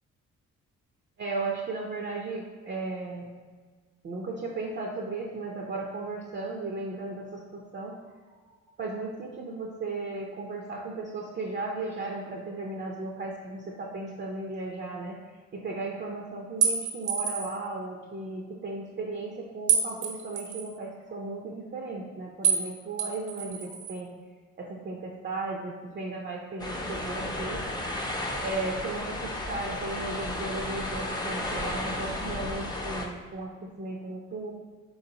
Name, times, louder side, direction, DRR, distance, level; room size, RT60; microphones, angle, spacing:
voice 1, 1.2-3.4 4.0-8.0 8.8-24.1 24.6-27.9 28.4-34.5, right 3 dB, 35° right, -1 dB, 0.5 m, -35 dB
sound 1, 16.6-17.6 19.7-20.7 22.4-22.7 23.0-23.9, right 7 dB, 75° right, 0.7 m, -27 dB
sound 2, 26.6-33.1, left 1 dB, 15° left, 0.5 m, -33 dB
3.9 x 3.9 x 2.8 m, 1.5 s
cardioid pair, 90°, 30 cm